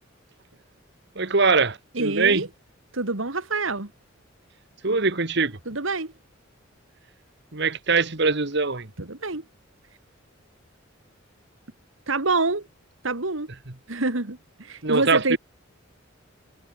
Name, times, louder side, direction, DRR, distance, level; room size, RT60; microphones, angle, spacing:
voice 1, 1.2-2.4 4.8-5.6 7.5-8.9 14.8-15.4, right 4 dB, 55° right, 1.8 m, -22 dB
voice 2, 1.9-2.5 2.9-3.9 5.7-6.1 9.0-9.4 12.1-12.7 13.0-13.5 13.9-15.4, right 3 dB, 75° right, 2.2 m, -26 dB
head